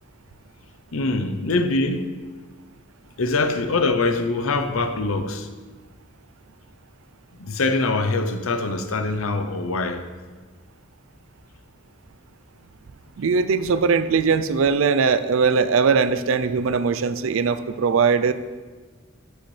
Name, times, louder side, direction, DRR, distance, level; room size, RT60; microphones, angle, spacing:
voice 1, 0.9-2.1 3.2-5.5 7.4-10.1, left 3 dB, 75° left, 0.7 m, -23 dB
voice 2, 13.2-18.3, right 5 dB, 70° right, 0.4 m, -20 dB
11.5 x 6.4 x 3.3 m
head